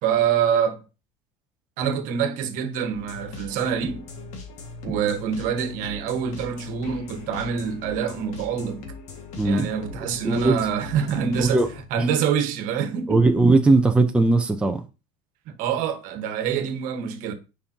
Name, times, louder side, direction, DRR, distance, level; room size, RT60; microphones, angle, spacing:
voice 1, 0.0-0.8 1.8-4.0 4.8-8.9 9.4-11.6 11.9-13.2 15.5-17.3, right 7 dB, 60° right, 1.3 m, -25 dB
sound 1, 2.9-11.8, left 4 dB, 50° left, 1.9 m, -40 dB
voice 2, 9.4-9.7 10.2-10.6 11.4-11.7 12.0-12.1 13.1-14.8, right 2 dB, 5° right, 0.6 m, -19 dB
9.6 x 5.3 x 2.9 m
supercardioid pair, 140°, 16 cm